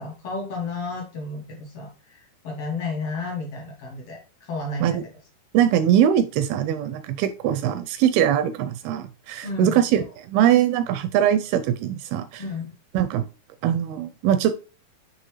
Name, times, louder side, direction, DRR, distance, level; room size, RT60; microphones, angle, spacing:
voice 1, 0.0-5.1 9.4-9.8 12.4-12.7, left 3 dB, 85° left, 0 dB, 1.3 m, -32 dB
voice 2, 5.5-12.4 12.9-13.3 13.6-14.6, right 10 dB, 85° right, 12 dB, 2.2 m, -22 dB
9.8 x 3.4 x 3.1 m, 0.35 s
omnidirectional pair, 4.8 m